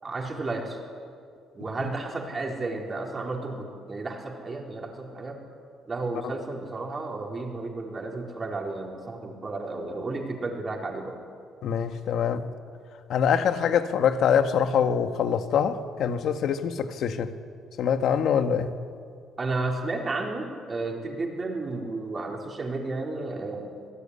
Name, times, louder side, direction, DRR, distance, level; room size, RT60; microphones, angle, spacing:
voice 1, 0.0-0.8 1.5-5.4 5.8-11.2 19.4-23.8, right 3 dB, 25° right, 4.4 m, -32 dB
voice 2, 11.6-12.5 13.1-17.3 17.8-18.8, left 7 dB, 65° left, 1.6 m, -24 dB
26.5 x 18.0 x 10.0 m
cardioid pair, 125°, 0 cm